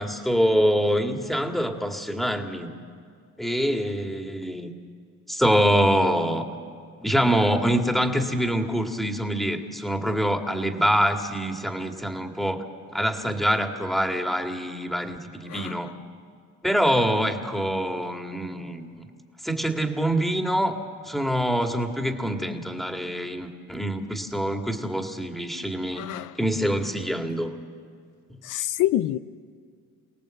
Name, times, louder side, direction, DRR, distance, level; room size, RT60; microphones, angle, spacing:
voice 1, 0.0-2.7 3.4-4.7 5.3-6.5 7.0-12.6 12.9-15.9 16.6-18.9 19.4-20.8 21.0-26.1 26.4-27.5 28.3-28.4, equal, ahead, 2.1 m, -25 dB
voice 2, 25.9-26.3 28.4-29.2, left 14 dB, 85° left, 0.6 m, -26 dB
28.0 x 18.0 x 7.8 m
cardioid pair, 90°, 30 cm